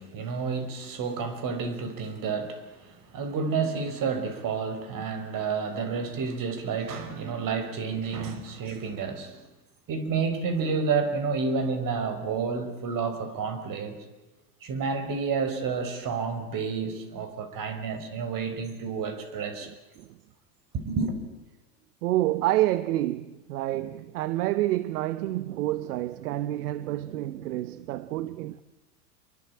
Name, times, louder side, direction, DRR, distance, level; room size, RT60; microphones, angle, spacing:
voice 1, 0.0-9.4 9.9-14.0 14.6-19.7 20.7-21.1, right 5 dB, 40° right, 5.7 m, -30 dB
voice 2, 22.0-28.6, right 15 dB, 65° right, 1.1 m, -28 dB
28.0 x 23.0 x 8.7 m
hypercardioid pair, 85°, 50 cm